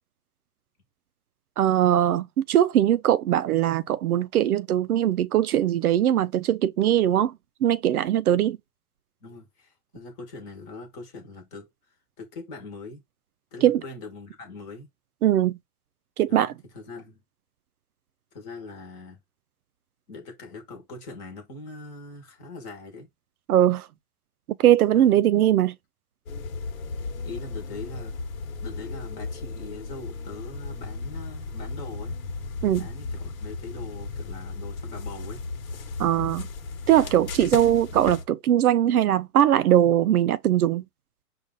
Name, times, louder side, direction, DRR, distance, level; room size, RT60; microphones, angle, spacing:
voice 1, 1.6-7.3 7.6-8.6 13.6-13.8 15.2-15.6 16.2-16.5 23.5-23.9 24.6-25.8 32.6-32.9 36.0-36.5 36.9-40.8, right 11 dB, 70° right, 0.5 m, -21 dB
voice 2, 9.2-13.0 13.5-14.9 16.3-17.2 18.3-19.2 20.1-23.1 24.9-25.2 27.0-28.1 28.6-32.2 32.8-35.4 37.0-37.3, left 3 dB, 15° left, 1.0 m, -42 dB
sound 1, 26.3-38.2, left 4 dB, 60° left, 1.2 m, -35 dB
5.2 x 2.5 x 3.6 m
hypercardioid pair, 165°, 46 cm